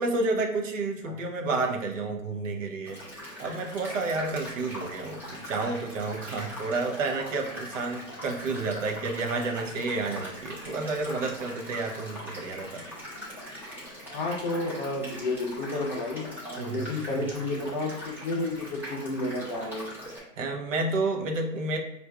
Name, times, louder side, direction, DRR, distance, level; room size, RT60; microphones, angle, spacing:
voice 1, 0.0-3.0 3.4-12.8 16.6-16.9 17.2-17.3 20.4-21.8, right 3 dB, 60° right, 2 dB, 0.7 m, -30 dB
sound 1, 2.8-20.2, equal, 5° right, 0.7 m, -41 dB
voice 2, 14.1-19.9, left 2 dB, 35° left, 0 dB, 0.6 m, -31 dB
4.4 x 2.5 x 2.3 m, 0.85 s
hypercardioid pair, 125°, 44 cm